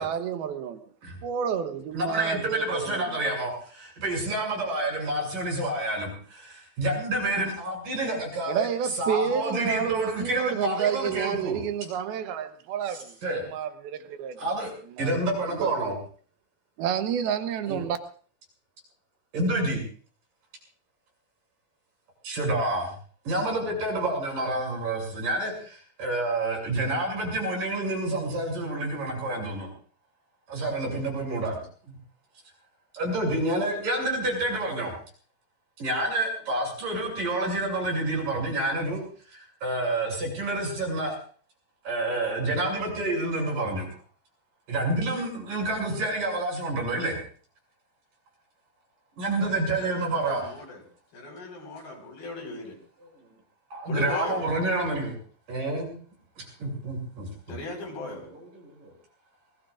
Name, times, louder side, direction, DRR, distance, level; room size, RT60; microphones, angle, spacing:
voice 1, 0.0-0.8 1.2-3.0 8.5-13.1 13.5-14.4 15.0-15.2 15.6-15.7 16.8-18.0, right 8 dB, 90° right, 3.0 m, -29 dB
voice 2, 1.9-8.7 9.0-11.6 12.9-13.4 14.4-14.7 15.0-16.0 17.7-17.8 19.3-19.8 22.2-22.9 23.3-29.7 30.5-32.0 32.9-35.0 35.8-39.0 39.3-41.2 41.9-43.9 44.7-47.2 49.2-50.6 53.7-55.2 55.5-56.0 56.4-57.6 58.3-58.9, right 2 dB, 60° right, 8.7 m, -28 dB
voice 3, 49.2-50.8 51.1-52.8 53.9-54.4 57.5-58.3, left 2 dB, 80° left, 6.6 m, -38 dB
27.0 x 20.5 x 2.5 m
omnidirectional pair, 4.2 m